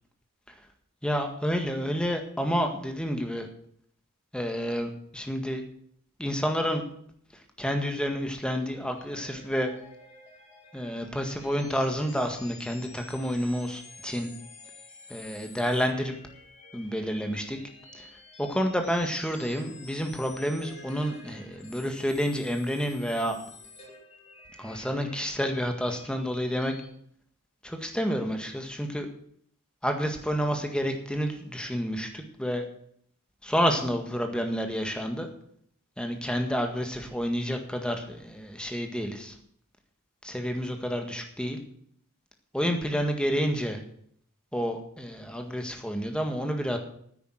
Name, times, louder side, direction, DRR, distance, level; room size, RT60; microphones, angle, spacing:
voice 1, 1.0-3.5 4.3-5.6 6.2-6.8 7.3-9.7 10.7-14.3 15.1-16.2 16.7-17.6 17.9-18.1 18.4-23.4 24.6-26.7 27.6-29.1 29.8-32.7 33.4-35.3 36.0-39.4 40.2-41.6 42.5-43.8 44.5-46.8, equal, 5° left, 4 dB, 1.7 m, -29 dB
sound 1, 9.0-26.8, left 2 dB, 30° left, 3.2 m, -50 dB
9.9 x 9.4 x 7.8 m, 0.65 s
head